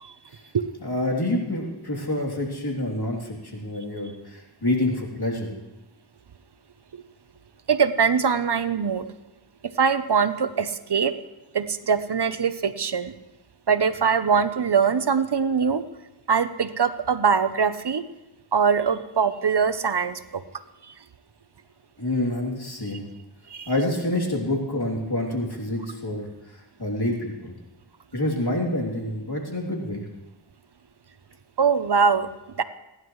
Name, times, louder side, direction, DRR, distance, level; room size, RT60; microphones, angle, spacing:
voice 1, 0.8-5.5 22.0-23.0 23.7-27.5 28.1-30.0, left 1 dB, 55° left, -1 dB, 3.1 m, -27 dB
voice 2, 7.7-9.1 9.8-11.1 11.5-13.1 13.7-15.8 16.3-18.0 18.5-20.4 23.5-23.7 31.6-32.3 32.6-32.7, right 6 dB, 60° right, 11 dB, 0.8 m, -22 dB
28.5 x 11.0 x 3.2 m, 0.96 s
wide cardioid pair, 45°, 46 cm